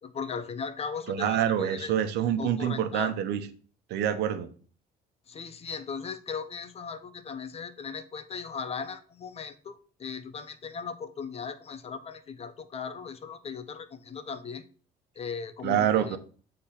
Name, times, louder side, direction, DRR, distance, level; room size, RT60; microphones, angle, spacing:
voice 1, 0.0-1.9 2.4-3.1 5.3-14.6 15.1-16.2, left 6 dB, 35° left, 12 dB, 0.9 m, -38 dB
voice 2, 1.1-3.4 3.9-4.5 15.6-16.2, right 10 dB, 80° right, 10 dB, 1.0 m, -26 dB
8.3 x 3.8 x 5.8 m, 0.41 s
cardioid pair, 110°, 17 cm